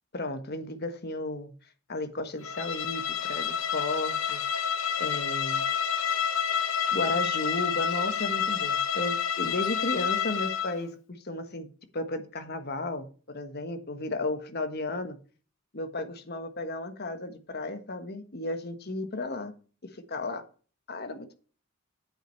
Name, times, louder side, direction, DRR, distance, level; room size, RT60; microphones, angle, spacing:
voice 1, 0.1-1.5 1.9-4.4 5.0-5.6 6.9-11.7 11.9-15.2 15.7-19.5 19.8-20.4 20.9-21.4, left 2 dB, 50° left, 8 dB, 1.4 m, -34 dB
Bowed string instrument, 2.4-10.8, left 7 dB, 70° left, 1.0 m, -29 dB
9.0 x 8.0 x 4.6 m, 0.39 s
head